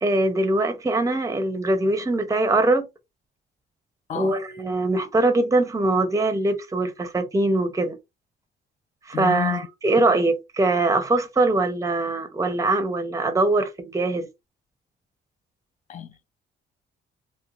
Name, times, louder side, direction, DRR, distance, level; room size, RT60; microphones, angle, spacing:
voice 1, 0.0-2.9 4.1-8.0 9.1-14.3, right 2 dB, 15° right, 0.6 m, -22 dB
voice 2, 9.1-9.6 15.9-16.3, left 9 dB, 40° left, 0.4 m, -29 dB
2.9 x 2.1 x 2.4 m
cardioid pair, 90°, 20 cm